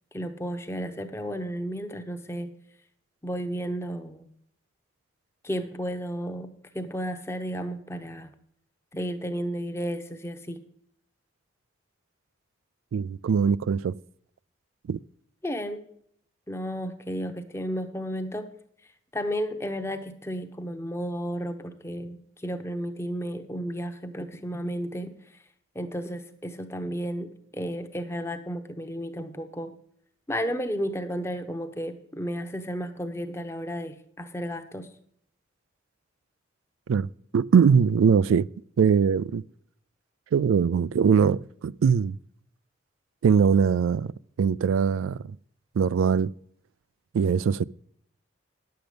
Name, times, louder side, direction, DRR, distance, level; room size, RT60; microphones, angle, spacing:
voice 1, 0.1-2.5 3.2-4.3 5.4-8.3 8.9-10.6 15.4-15.8 16.5-18.5 19.1-25.1 25.7-29.7 30.3-34.9, equal, 15° left, 0.8 m, -33 dB
voice 2, 12.9-14.0 14.9-15.0 36.9-38.5 38.8-39.4 40.3-42.2 43.2-44.1 44.4-45.4 45.7-46.3 47.1-47.6, right 6 dB, 85° right, 0.3 m, -22 dB
10.5 x 7.9 x 5.1 m
head